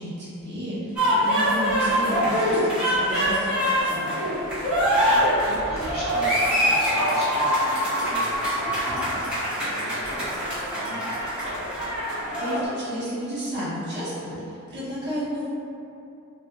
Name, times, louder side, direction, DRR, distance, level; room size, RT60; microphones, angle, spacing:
voice 1, 0.0-4.1 12.4-15.5, equal, 50° right, -10 dB, 1.2 m, -32 dB
sound 1, 1.0-12.6, equal, 5° right, 1.4 m, -24 dB
voice 2, 4.7-11.3, equal, 25° left, -14 dB, 1.5 m, -39 dB
3.4 x 3.3 x 2.7 m, 2.7 s
head